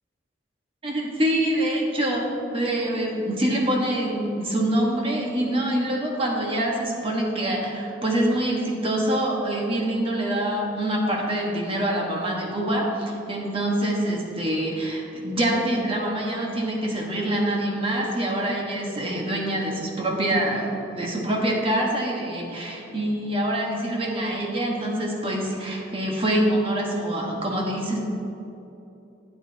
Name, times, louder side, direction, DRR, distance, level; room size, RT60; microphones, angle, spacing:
voice 1, 0.8-28.0, right 1 dB, 30° right, -2 dB, 1.5 m, -25 dB
12.5 x 8.7 x 2.9 m, 2.9 s
head